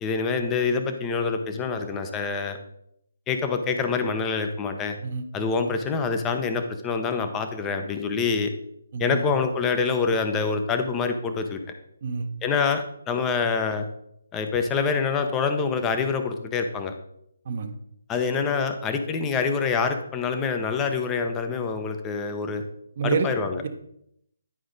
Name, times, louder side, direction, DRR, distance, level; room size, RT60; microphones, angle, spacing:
voice 1, 0.0-2.6 3.3-5.0 5.3-8.5 9.0-11.6 12.4-13.9 14.3-16.9 18.1-22.6 23.0-23.6, left 5 dB, 15° left, 6 dB, 0.8 m, -26 dB
voice 2, 8.9-9.2 12.0-12.3 17.5-17.7 23.0-23.3 23.6-23.7, right 5 dB, 45° right, 6 dB, 1.0 m, -27 dB
10.0 x 4.9 x 3.9 m, 0.74 s
figure-of-eight pair, 150°, 0 cm